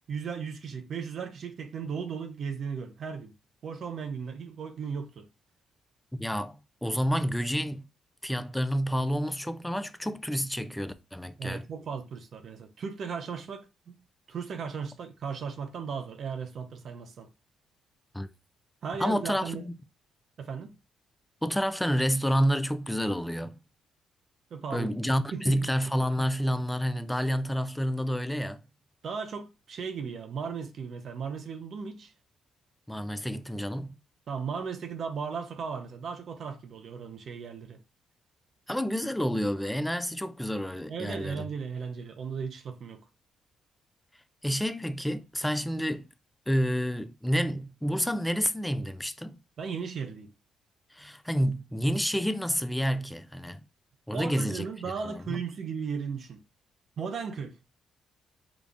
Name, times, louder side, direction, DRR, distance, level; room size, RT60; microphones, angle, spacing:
voice 1, 0.1-3.3 3.6-5.3 11.4-13.9 14.3-17.3 18.8-19.6 20.4-20.7 24.5-24.9 25.3-25.7 29.0-32.1 34.3-37.8 40.9-43.0 49.6-50.3 54.1-56.4 57.0-57.6, right 6 dB, 55° right, 0.6 m, -36 dB
voice 2, 6.2-7.9 8.2-11.6 18.1-18.3 19.0-19.7 21.4-23.6 24.7-28.6 32.9-34.0 38.7-41.5 44.4-46.1 46.5-49.4 50.9-53.6 54.1-54.7 55.0-55.4, equal, 5° left, 0.4 m, -29 dB
3.9 x 2.3 x 3.5 m
cardioid pair, 90°, 0 cm